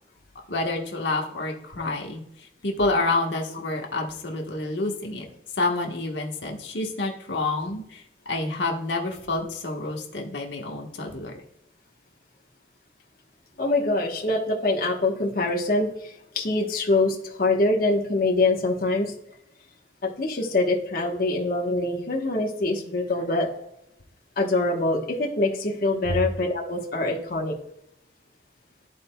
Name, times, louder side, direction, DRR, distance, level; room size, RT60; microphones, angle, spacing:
voice 1, 0.5-5.2 5.6-11.3 26.0-26.2, left 2 dB, 85° left, 1 dB, 1.2 m, -28 dB
voice 2, 13.6-15.9 16.3-19.1 20.0-23.5 24.4-27.5, left 2 dB, 55° left, -2 dB, 1.1 m, -24 dB
13.0 x 4.3 x 2.2 m, 0.76 s
head